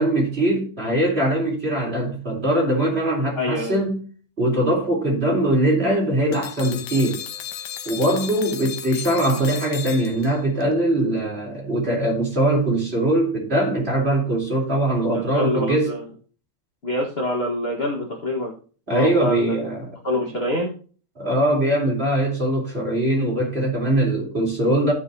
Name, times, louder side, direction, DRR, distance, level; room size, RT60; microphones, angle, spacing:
voice 1, 0.0-4.0 4.4-7.2 7.9-15.9 18.9-19.9 21.2-24.9, right 1 dB, 20° right, 3.5 m, -21 dB
voice 2, 3.3-3.8 15.1-16.0 16.8-18.5 18.9-19.6 20.0-20.7, left 1 dB, 30° left, 1.3 m, -25 dB
sound 1, 6.3-10.6, left 10 dB, 80° left, 2.2 m, -35 dB
15.0 x 5.9 x 2.8 m
omnidirectional pair, 3.4 m